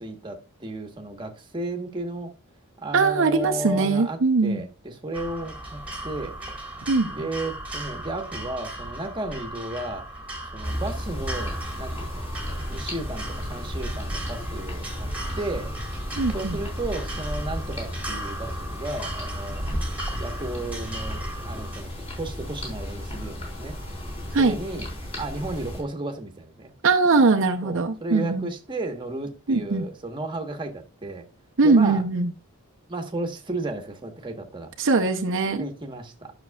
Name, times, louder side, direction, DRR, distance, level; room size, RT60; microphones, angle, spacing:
voice 1, 0.0-2.3 2.8-6.3 7.1-10.1 10.5-12.2 12.7-15.1 15.4-15.7 16.3-19.6 20.2-21.9 22.2-23.8 24.4-24.9 25.2-26.7 27.6-31.2 31.6-32.0 32.9-34.7 35.5-36.3, right 2 dB, 20° right, 1.2 m, -34 dB
voice 2, 2.9-4.6 6.9-7.1 16.2-16.6 24.3-24.6 26.8-28.5 29.5-29.8 31.6-32.3 34.8-35.7, right 3 dB, 60° right, 0.7 m, -21 dB
sound 1, 5.1-21.8, right 1 dB, 5° right, 1.8 m, -35 dB
sound 2, 10.6-25.8, left 1 dB, 30° left, 4.0 m, -35 dB
11.0 x 6.1 x 2.3 m
head